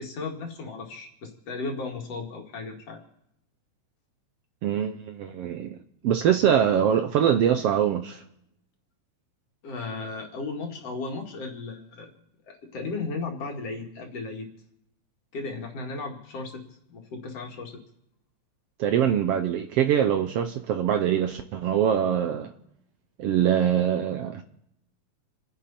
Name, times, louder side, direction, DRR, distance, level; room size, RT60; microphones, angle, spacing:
voice 1, 0.0-3.0 9.6-12.1 12.5-14.5 15.3-16.6 16.9-17.8, left 3 dB, 60° left, 3.2 m, -35 dB
voice 2, 4.6-5.8 6.0-8.2 18.8-22.5 23.2-24.4, right 9 dB, 70° right, 1.5 m, -23 dB
29.5 x 10.0 x 4.3 m
omnidirectional pair, 3.3 m